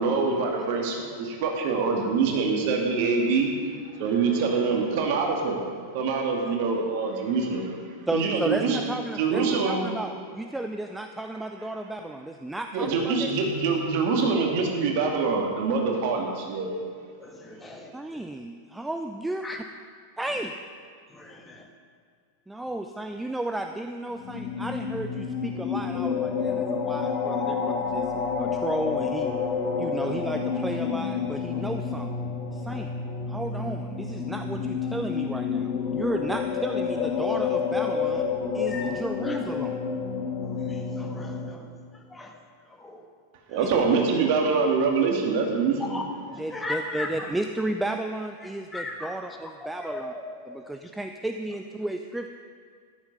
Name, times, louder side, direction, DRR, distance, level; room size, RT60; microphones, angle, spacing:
voice 1, 0.0-3.5 4.0-5.6 5.9-7.7 8.1-8.8 9.2-9.8 12.7-16.7 43.5-46.0, right 4 dB, 45° right, 1 dB, 2.4 m, -24 dB
voice 2, 8.1-13.3 17.9-19.6 20.2-20.5 22.5-28.1 28.4-29.3 29.8-32.2 32.5-32.9 33.3-38.3 38.5-39.8 43.6-43.7 46.4-50.1 50.5-52.3, right 1 dB, 5° right, 6 dB, 0.5 m, -33 dB
voice 3, 17.2-18.2 19.4-19.6 21.1-21.7 22.6-22.7 29.8-30.1 32.6-32.9 38.7-38.9 39.2-39.4 40.4-41.7 42.1-42.3 42.8-43.0 43.5-43.6 45.8-46.0 46.3-47.3 48.7-49.1 49.6-50.2 50.5-50.6, left 2 dB, 10° left, 2 dB, 1.4 m, -38 dB
sound 1, 24.1-41.5, left 6 dB, 35° left, 1.4 m, -29 dB
13.5 x 11.5 x 5.5 m, 2.1 s
figure-of-eight pair, 90°, 0 cm